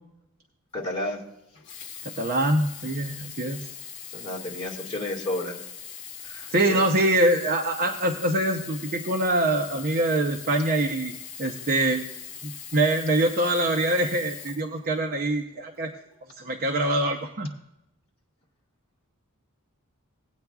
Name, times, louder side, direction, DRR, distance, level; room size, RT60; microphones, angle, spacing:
voice 1, 0.7-1.2 4.1-5.6 6.2-6.8, left 1 dB, 30° left, -3 dB, 2.0 m, -32 dB
Sink (filling or washing), 1.5-15.3 16.1-16.2, left 7 dB, 60° left, 1.1 m, -41 dB
voice 2, 2.2-3.6 6.5-11.1 11.4-12.0 12.4-15.9 16.4-17.5, right 1 dB, 45° right, 4 dB, 0.7 m, -24 dB
18.0 x 8.9 x 2.4 m, 0.87 s
head